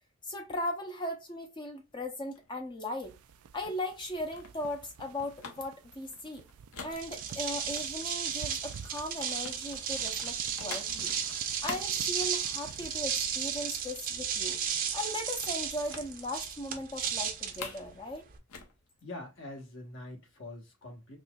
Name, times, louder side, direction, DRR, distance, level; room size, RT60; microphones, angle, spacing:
voice 1, 0.2-3.2 3.5-6.4 6.8-11.1 11.6-14.6 14.9-18.3, left 1 dB, 20° left, 0.5 m, -38 dB
sound 1, 1.9-7.6 8.0-12.9 13.2-13.5 13.7-13.8 14.2-14.9 15.9-16.1 16.5-16.6 16.9-17.9 18.2-19.9, left 5 dB, 75° left, 0.9 m, -48 dB
sound 2, 3.0-13.9, right 6 dB, 85° right, 0.4 m, -52 dB
sound 3, 6.9-18.4, right 7 dB, 40° right, 0.6 m, -34 dB
voice 2, 19.0-21.2, left 2 dB, 60° left, 1.2 m, -44 dB
4.2 x 3.0 x 2.3 m
head